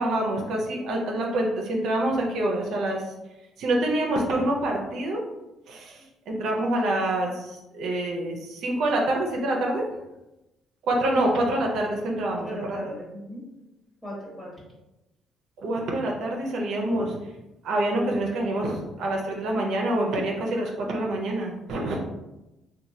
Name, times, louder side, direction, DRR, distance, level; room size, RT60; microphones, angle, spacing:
voice 1, 0.0-3.0 3.6-5.2 5.7-9.9 10.8-12.8 15.6-17.2 17.6-22.0, right 1 dB, 75° right, 0 dB, 0.5 m, -26 dB
voice 2, 12.2-13.4 14.0-14.5, equal, 15° left, -6 dB, 1.2 m, -37 dB
2.9 x 2.2 x 2.6 m, 0.97 s
cardioid pair, 80°, 0 cm